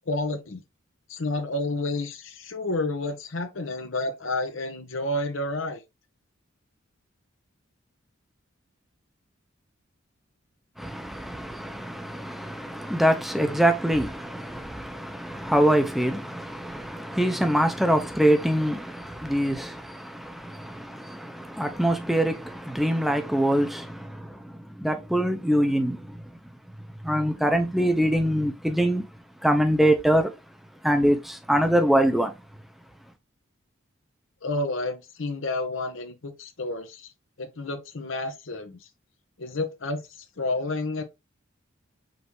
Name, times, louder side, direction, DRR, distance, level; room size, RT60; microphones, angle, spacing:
voice 1, 0.1-0.6 1.1-5.8 34.4-37.1 37.4-38.8 39.4-40.0 40.4-41.0, left 2 dB, 70° left, 0.9 m, -30 dB
voice 2, 10.8-26.3 27.0-29.1 29.4-30.3 30.8-32.3, equal, ahead, 0.7 m, -24 dB
5.4 x 2.8 x 3.0 m
head